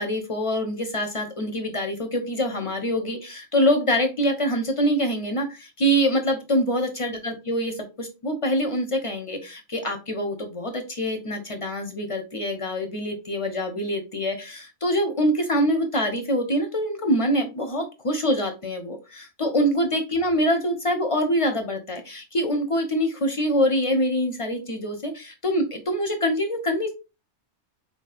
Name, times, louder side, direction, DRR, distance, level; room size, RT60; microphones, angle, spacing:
voice 1, 0.0-26.9, equal, 45° left, 6 dB, 0.4 m, -25 dB
3.9 x 2.6 x 2.3 m, 0.28 s
omnidirectional pair, 1.2 m